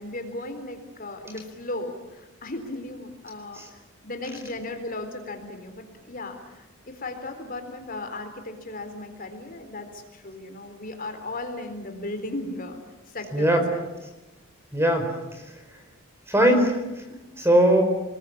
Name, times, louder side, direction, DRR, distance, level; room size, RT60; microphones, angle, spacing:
voice 1, 0.0-6.6 6.9-12.8 13.1-13.9 17.1-17.3, left 2 dB, 40° left, 6 dB, 3.9 m, -36 dB
voice 2, 13.3-13.6 14.7-15.5 16.3-17.0 17.4-17.8, right 1 dB, 10° right, 5 dB, 4.5 m, -21 dB
28.0 x 21.0 x 9.8 m, 1.1 s
head